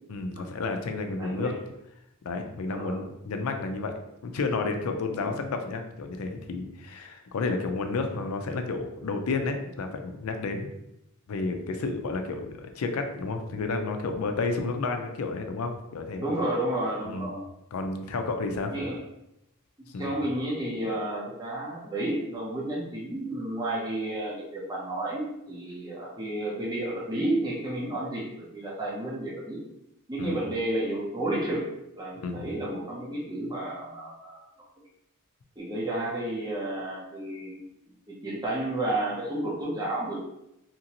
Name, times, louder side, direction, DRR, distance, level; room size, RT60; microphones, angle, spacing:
voice 1, 0.1-1.6 2.2-3.9 4.2-10.7 11.3-16.2 17.0-17.3 17.7-18.7 19.9-20.1 30.2-30.4 32.1-32.4, left 3 dB, 85° left, 6 dB, 0.4 m, -31 dB
voice 2, 1.2-1.6 2.6-3.0 5.2-5.4 16.2-17.5 18.7-19.0 20.0-29.6 30.1-31.7 31.9-34.5 35.6-37.6 38.1-40.2, right 1 dB, 20° right, -4 dB, 0.6 m, -31 dB
2.9 x 2.6 x 2.8 m, 0.85 s
head